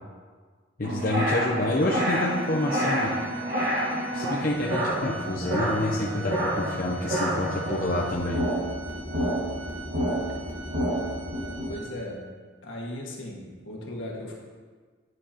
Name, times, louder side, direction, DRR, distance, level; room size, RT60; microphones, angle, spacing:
voice 1, 0.8-3.1 4.1-8.4, left 1 dB, 45° left, -3 dB, 0.7 m, -28 dB
sound 1, 0.8-11.7, equal, 50° right, 1.6 m, -29 dB
Organ, 1.7-12.3, right 4 dB, 70° right, 1.6 m, -44 dB
voice 2, 11.7-12.2 12.6-14.3, left 1 dB, 70° left, -2 dB, 1.7 m, -37 dB
9.6 x 7.6 x 2.9 m, 1.5 s
head